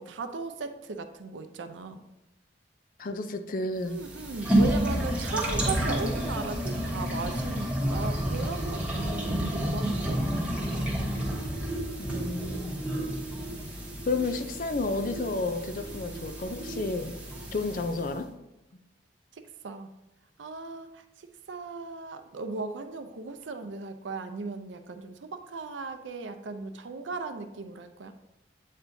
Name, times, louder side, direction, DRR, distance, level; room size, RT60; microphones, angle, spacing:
voice 1, 0.0-2.1 3.8-10.5 19.3-19.9 20.4-28.1, right 4 dB, 85° right, 8 dB, 0.5 m, -37 dB
voice 2, 3.0-4.0 4.9-5.1 12.0-12.8 14.1-17.2 17.5-18.3, left 3 dB, 45° left, 8 dB, 0.5 m, -31 dB
sound 1, 3.8-18.1, right 1 dB, 10° right, 1.1 m, -30 dB
8.1 x 4.4 x 2.7 m, 0.95 s
head